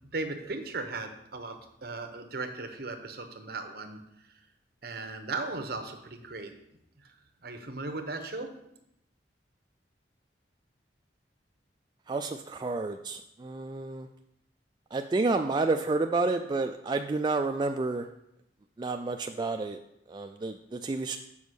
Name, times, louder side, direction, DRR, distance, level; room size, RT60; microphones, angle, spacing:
voice 1, 0.1-1.6 1.8-4.0 4.8-6.5 7.4-8.5, right 3 dB, 60° right, 7 dB, 1.0 m, -36 dB
voice 2, 12.1-14.1 14.9-18.1 18.8-19.8 20.1-21.2, right 3 dB, 25° right, 5 dB, 0.3 m, -30 dB
7.1 x 5.1 x 6.3 m, 0.80 s
head